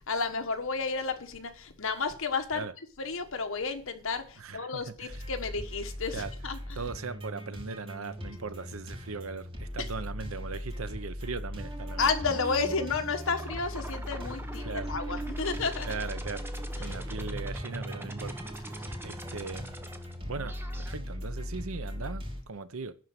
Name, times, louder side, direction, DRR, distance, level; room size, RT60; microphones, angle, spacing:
voice 1, 0.1-2.7 3.0-6.8 9.8-9.9 12.0-15.9 16.8-16.9, left 4 dB, 65° left, 1.4 m, -32 dB
voice 2, 4.4-5.3 6.1-6.3 6.8-12.1 14.6-14.9 15.8-16.4 16.8-19.7 20.2-22.9, right 4 dB, 70° right, 0.8 m, -39 dB
sound 1, 5.1-22.4, equal, 25° right, 3.0 m, -39 dB
sound 2, 11.6-20.9, right 2 dB, 10° right, 0.9 m, -42 dB
11.0 x 4.6 x 8.0 m
head